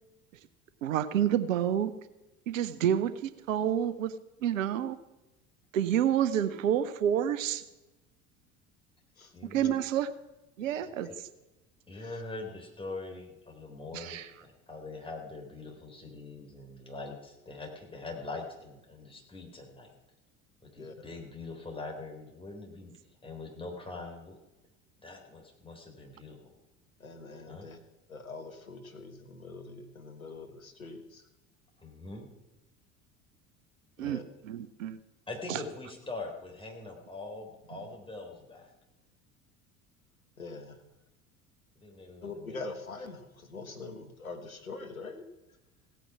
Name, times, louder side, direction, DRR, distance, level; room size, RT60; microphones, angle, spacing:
voice 1, 0.8-1.9 2.5-4.1 4.4-5.0 5.7-7.6 9.5-10.1 10.6-11.1 13.9-14.3 34.0-34.2 34.5-35.0 35.5-35.6, right 10 dB, 70° right, 14 dB, 0.9 m, -28 dB
voice 2, 9.3-9.8 11.9-19.9 20.6-23.0 23.2-24.4 25.0-26.5 27.5-27.7 31.8-32.3 34.0-34.1 35.3-38.7 41.8-42.6, left 3 dB, 15° left, 2 dB, 3.9 m, -43 dB
voice 3, 10.6-11.1 11.9-12.2 20.8-21.2 27.0-27.8 28.1-31.3 34.0-34.2 40.4-40.9 42.2-45.6, left 3 dB, 85° left, 7 dB, 1.4 m, -44 dB
16.5 x 9.1 x 6.0 m, 0.99 s
figure-of-eight pair, 70°, 40 cm